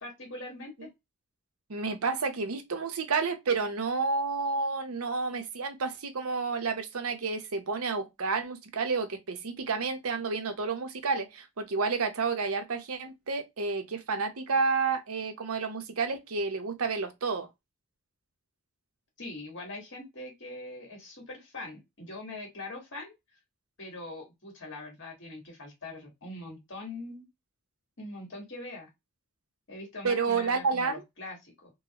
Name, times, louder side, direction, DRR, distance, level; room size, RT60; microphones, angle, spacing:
voice 1, 0.0-0.9 19.2-23.1 23.8-27.3 28.0-28.9 29.7-31.7, left 2 dB, 55° left, 1.7 m, -42 dB
voice 2, 1.7-17.5 30.0-31.0, right 4 dB, 75° right, 0.7 m, -30 dB
3.9 x 2.1 x 2.9 m
head